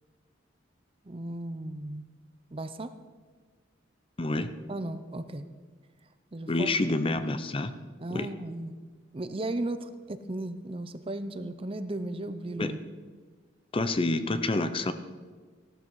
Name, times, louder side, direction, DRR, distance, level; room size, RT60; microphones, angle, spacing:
voice 1, 1.1-2.0 2.5-2.9 4.7-5.5 6.3-6.7 8.0-8.8 9.1-12.8, right 1 dB, 30° right, 11 dB, 0.6 m, -35 dB
voice 2, 4.2-4.5 6.5-7.7 8.1-8.3 12.6-12.8 13.7-14.9, left 2 dB, 30° left, 11 dB, 0.6 m, -28 dB
15.5 x 12.5 x 4.7 m, 1.5 s
head